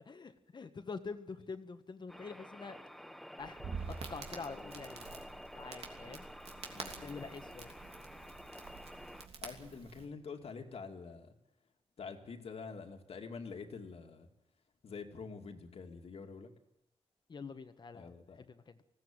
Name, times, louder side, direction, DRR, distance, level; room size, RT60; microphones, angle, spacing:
voice 1, 0.0-2.8 3.4-3.6 4.1-6.3 7.0-7.7 17.3-18.8, left 4 dB, 45° left, 9 dB, 1.5 m, -46 dB
sound 1, 2.1-9.3, equal, ahead, 0.7 m, -50 dB
Crackle, 3.4-10.0, right 4 dB, 70° right, 3.1 m, -47 dB
voice 2, 4.4-4.8 6.7-7.3 9.4-11.3 12.0-14.3 14.8-16.5 17.9-18.5, left 5 dB, 70° left, 4 dB, 2.5 m, -47 dB
20.0 x 16.5 x 8.9 m, 0.80 s
wide cardioid pair, 140°, 11 cm